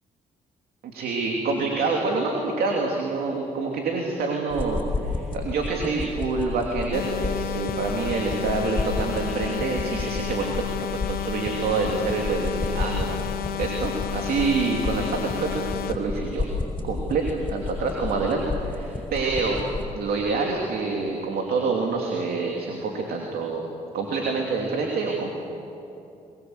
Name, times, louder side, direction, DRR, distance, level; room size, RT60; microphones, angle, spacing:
voice 1, 0.8-16.5 16.8-17.2 17.5-19.6 19.9-23.7 23.9-25.3, right 4 dB, 75° right, 1 dB, 2.9 m, -27 dB
sound 1, 4.5-19.9, left 3 dB, 30° left, 4.6 m, -32 dB
sound 2, 6.9-15.9, left 9 dB, 75° left, 1.3 m, -32 dB
22.0 x 22.0 x 8.0 m, 2.8 s
supercardioid pair, 55°, 16 cm